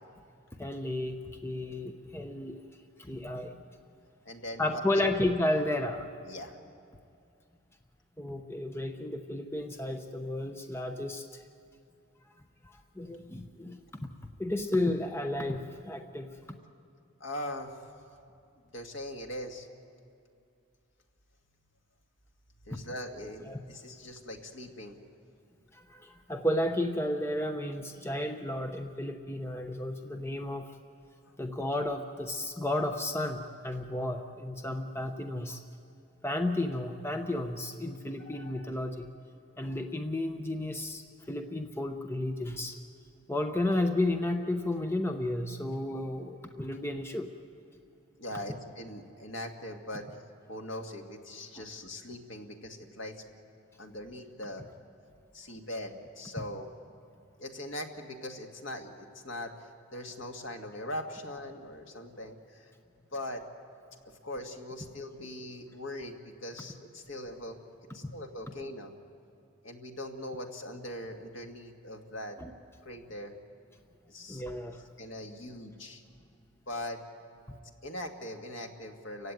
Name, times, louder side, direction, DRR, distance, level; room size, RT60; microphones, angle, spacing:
voice 1, 0.6-1.2 1.4-2.6 3.0-3.6 4.6-6.1 8.2-11.4 12.6-13.8 14.4-16.3 22.7-22.8 23.5-23.6 25.7-30.7 31.4-35.6 36.2-39.1 39.6-42.8 43.3-47.3 51.6-51.7 72.4-72.5 74.3-74.8, left 1 dB, 10° left, 5 dB, 0.8 m, -32 dB
voice 2, 4.3-4.6 5.0-5.1 6.3-6.6 17.2-17.8 18.7-19.7 22.7-25.0 48.2-50.1 50.5-53.4 53.8-54.6 55.3-56.7 57.4-62.7 63.1-63.5 64.0-67.6 67.9-68.9 69.6-72.4 72.8-73.3 74.1-74.4 75.0-76.0 76.7-77.0 77.8-79.3, left 1 dB, 70° left, 3 dB, 2.0 m, -41 dB
30.0 x 16.0 x 9.2 m, 2.4 s
head